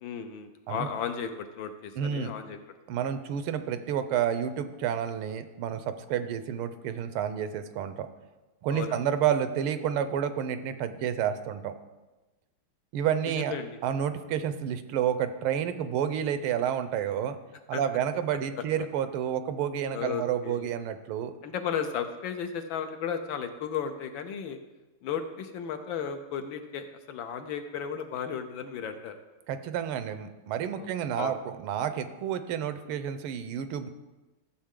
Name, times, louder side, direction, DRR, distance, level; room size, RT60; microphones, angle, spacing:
voice 1, 0.0-2.6 8.7-9.0 13.2-13.8 17.7-17.8 19.9-20.7 21.4-24.6 25.0-29.2 30.8-30.9 31.2-31.4, left 7 dB, 70° left, 7 dB, 1.3 m, -34 dB
voice 2, 2.0-2.3 2.9-8.1 8.6-11.7 12.9-13.5 13.8-17.4 17.7-21.3 29.5-33.9, right 9 dB, 80° right, 10 dB, 1.5 m, -30 dB
13.5 x 7.3 x 3.7 m, 1.1 s
omnidirectional pair, 2.4 m